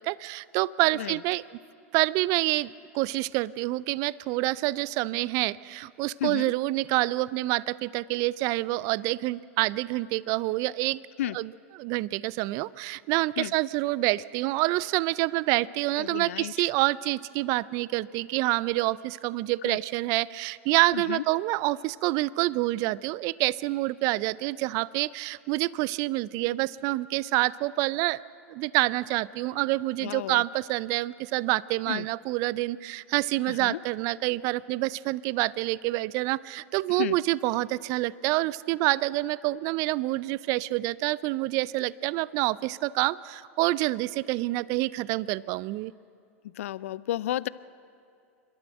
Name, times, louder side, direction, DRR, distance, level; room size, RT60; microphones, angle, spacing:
voice 1, 0.0-1.4 1.9-2.7 2.9-11.0 11.3-28.2 28.5-45.9, right 19 dB, 50° right, 21 dB, 0.4 m, -27 dB
voice 2, 6.2-6.5 11.2-11.4 13.4-13.5 16.0-16.7 19.6-19.8 20.9-21.2 30.0-30.4 31.9-32.1 33.5-33.8 37.0-37.2 46.6-47.5, left 13 dB, 70° left, 19 dB, 0.4 m, -32 dB
27.5 x 12.5 x 7.8 m, 2.5 s
hypercardioid pair, 95°, 8 cm